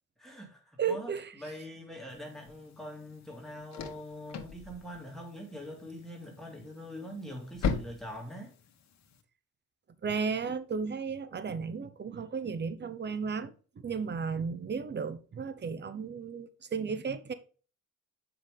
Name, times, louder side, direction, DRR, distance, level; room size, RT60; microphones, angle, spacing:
voice 1, 0.2-1.1 1.4-8.5, equal, ahead, 2.3 m, -43 dB
voice 2, 0.8-1.3 10.0-17.3, right 5 dB, 35° right, 1.0 m, -34 dB
sound 1, 2.1-9.2, left 5 dB, 60° left, 1.5 m, -40 dB
7.5 x 5.9 x 3.4 m
cardioid pair, 90°, 30 cm